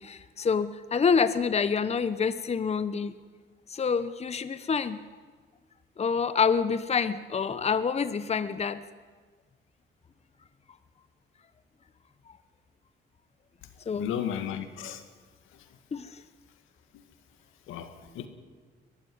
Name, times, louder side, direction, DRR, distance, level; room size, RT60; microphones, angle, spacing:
voice 1, 0.0-3.2 3.7-5.0 6.0-8.8 13.9-14.2 15.9-16.2, left 6 dB, 30° left, 13 dB, 0.9 m, -27 dB
voice 2, 13.9-15.0 17.7-18.3, left 9 dB, 90° left, 8 dB, 2.0 m, -34 dB
22.0 x 15.0 x 9.4 m, 1.5 s
cardioid pair, 90°, 20 cm